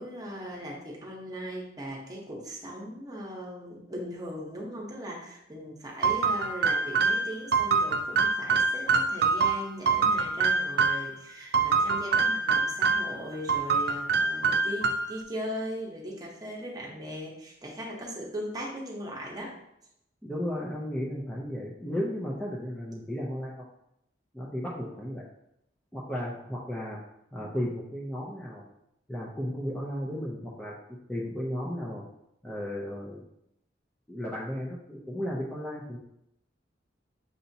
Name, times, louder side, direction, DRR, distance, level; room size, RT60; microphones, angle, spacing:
voice 1, 0.0-19.5, equal, 20° right, -2 dB, 0.9 m, -39 dB
sound 1, 6.0-11.1 11.5-13.2 13.5-15.2, right 4 dB, 55° right, 0.3 m, -25 dB
voice 2, 20.2-23.6 24.3-25.2 25.9-27.0 27.3-28.6 29.1-30.8 31.1-32.1 32.4-33.2 34.1-36.0, equal, 5° left, -6 dB, 0.5 m, -34 dB
6.6 x 2.8 x 2.7 m, 0.79 s
head